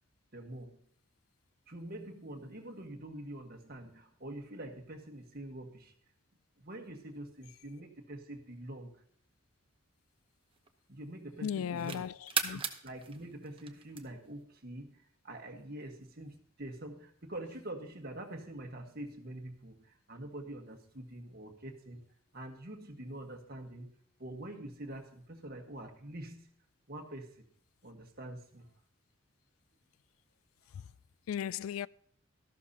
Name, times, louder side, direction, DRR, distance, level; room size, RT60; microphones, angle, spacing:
voice 1, 0.3-0.7 1.7-5.9 6.6-9.0 10.9-12.1 12.4-22.0 22.3-23.9 24.2-26.5 26.9-27.4 27.8-28.7 30.7-30.8, right 1 dB, 50° right, 1.5 m, -45 dB
sound 1, 9.3-11.0 11.5-14.4, right 7 dB, 25° right, 0.9 m, -39 dB
voice 2, 11.4-12.1 12.4-12.6 31.3-31.9, left 8 dB, 80° left, 0.3 m, -35 dB
13.5 x 12.0 x 2.8 m
head